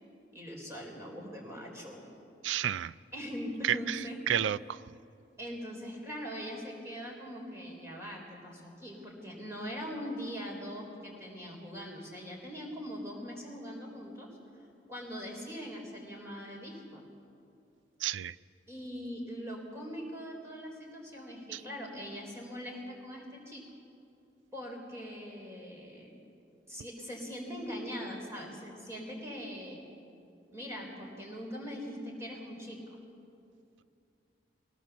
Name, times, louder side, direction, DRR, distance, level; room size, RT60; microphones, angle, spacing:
voice 1, 0.3-2.0 3.1-4.2 5.4-14.3 14.9-17.0 18.7-23.6 24.5-26.2 26.7-29.8 30.5-33.0, equal, 15° right, 0 dB, 3.9 m, -41 dB
voice 2, 2.4-2.9 3.6-4.0 4.3-4.8 18.0-18.3, right 10 dB, 90° right, 18 dB, 0.4 m, -30 dB
20.5 x 18.0 x 7.1 m, 2.6 s
head